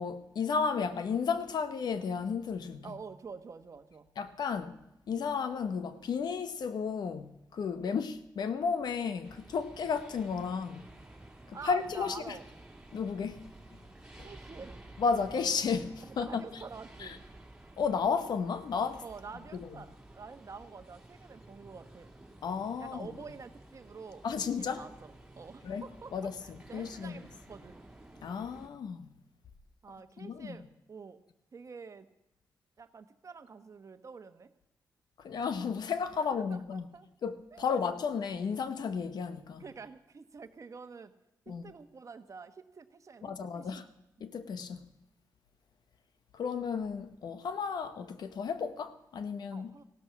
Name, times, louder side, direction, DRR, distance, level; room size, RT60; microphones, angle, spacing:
voice 1, 0.0-2.9 4.2-4.7 5.1-10.9 11.6-12.4 12.9-13.4 15.0-16.4 17.0-17.2 17.8-19.0 19.5-19.7 22.4-23.1 24.2-24.8 25.6-25.9 26.1-26.3 26.7-27.2 28.2-29.1 30.2-30.6 35.2-36.8 37.2-39.6 41.5-41.6 43.2-43.8 44.2-44.8 46.3-49.7, left 5 dB, 70° left, 0.9 m, -33 dB
voice 2, 2.8-4.1 7.8-8.0 11.5-12.4 14.2-14.9 16.0-17.2 19.0-22.1 22.8-27.8 29.8-31.2 31.5-32.1 32.8-34.5 36.2-37.1 37.5-37.7 39.6-41.1 41.5-43.9 49.5-49.8, right 5 dB, 45° right, 1.1 m, -48 dB
sound 1, 9.2-28.7, right 1 dB, 10° right, 3.1 m, -53 dB
16.0 x 12.5 x 5.8 m
cardioid pair, 75°, 7 cm